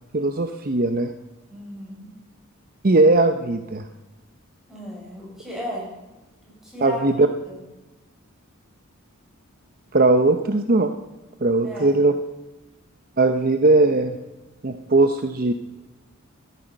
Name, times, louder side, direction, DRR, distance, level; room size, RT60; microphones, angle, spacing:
voice 1, 0.1-1.1 2.8-3.9 6.8-7.3 9.9-10.9 11.4-12.1 13.2-14.2 14.6-15.5, right 2 dB, 40° right, 7 dB, 0.7 m, -19 dB
voice 2, 1.5-2.1 4.7-5.9 6.4-7.6 11.6-12.0, left 1 dB, ahead, -5 dB, 6.0 m, -35 dB
14.5 x 13.5 x 5.3 m, 1.1 s
head